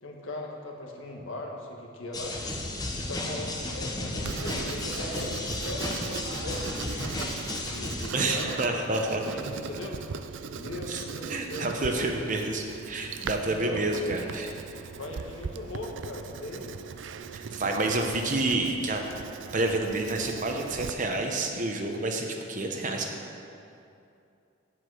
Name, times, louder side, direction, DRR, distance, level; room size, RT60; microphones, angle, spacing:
voice 1, 0.0-2.4 2.9-7.1 7.6-8.8 9.1-10.0 10.5-11.7 13.5-14.2 15.0-16.7, left 2 dB, 85° left, 0 dB, 1.5 m, -39 dB
sound 1, 2.1-8.1, left 2 dB, 20° left, 0.9 m, -33 dB
Writing, 4.2-20.9, right 5 dB, 70° right, 0.4 m, -39 dB
voice 2, 8.1-9.2 10.9-11.0 11.3-14.5 17.3-19.0 19.5-23.2, right 2 dB, 40° right, 3 dB, 0.8 m, -29 dB
8.6 x 7.7 x 6.3 m, 2.6 s
head